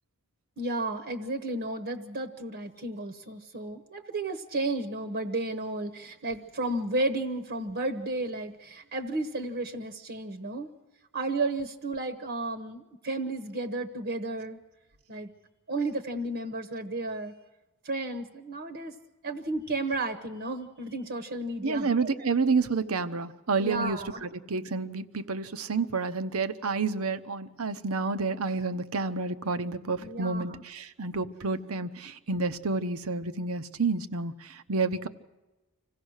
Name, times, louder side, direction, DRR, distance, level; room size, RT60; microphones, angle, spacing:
voice 1, 0.6-10.7 11.1-14.6 15.1-15.3 15.7-17.3 17.8-18.9 19.2-22.1 23.6-24.2 30.0-30.6, right 2 dB, 55° right, 6 dB, 1.1 m, -33 dB
voice 2, 21.6-35.1, right 4 dB, 75° right, 11 dB, 0.9 m, -29 dB
26.0 x 16.0 x 6.5 m, 1.1 s
head